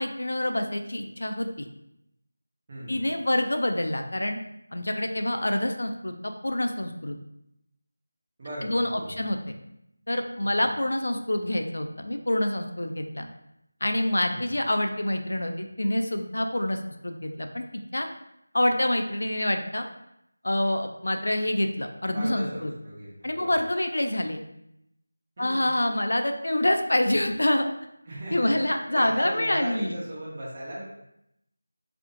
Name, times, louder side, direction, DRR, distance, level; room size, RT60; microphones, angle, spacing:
voice 1, 0.0-1.7 2.9-4.4 4.7-7.2 8.6-9.4 10.1-13.3 13.8-17.6 17.9-18.1 18.5-19.9 20.4-22.7 23.2-24.4 25.4-27.7 28.3-29.9, left 1 dB, 75° left, 5 dB, 0.3 m, -26 dB
voice 2, 2.7-3.1 8.4-9.3 10.4-10.7 14.3-14.6 22.1-23.6 25.4-25.7 28.1-28.5 28.9-30.8, right 1 dB, 30° right, -6 dB, 0.7 m, -37 dB
2.5 x 2.0 x 2.7 m, 0.81 s
figure-of-eight pair, 170°, 0 cm